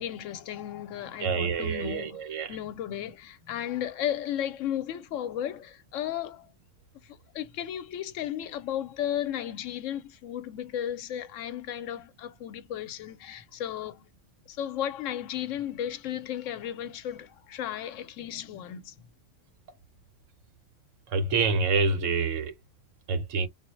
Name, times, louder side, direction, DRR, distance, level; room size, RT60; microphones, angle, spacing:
voice 1, 0.0-2.2 2.5-6.5 7.0-14.0 14.5-18.9, left 10 dB, 85° left, 1.0 m, -34 dB
voice 2, 1.2-2.6 21.1-22.5 23.1-23.5, right 4 dB, 85° right, 1.1 m, -27 dB
3.9 x 2.0 x 3.0 m
omnidirectional pair, 1.3 m